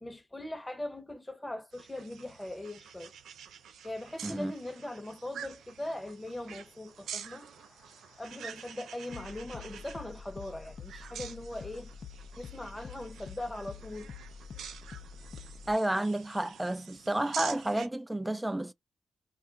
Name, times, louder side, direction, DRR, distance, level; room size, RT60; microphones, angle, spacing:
voice 1, 0.0-3.1 3.8-7.5 8.2-11.9 12.4-14.1, left 1 dB, 15° left, 0.9 m, -40 dB
sound 1, 1.7-17.9, right 8 dB, 80° right, 0.4 m, -47 dB
sound 2, 7.1-15.7, left 6 dB, 60° left, 0.5 m, -48 dB
voice 2, 15.7-18.7, right 1 dB, 10° right, 0.4 m, -31 dB
2.3 x 2.1 x 3.8 m
supercardioid pair, 45°, 0 cm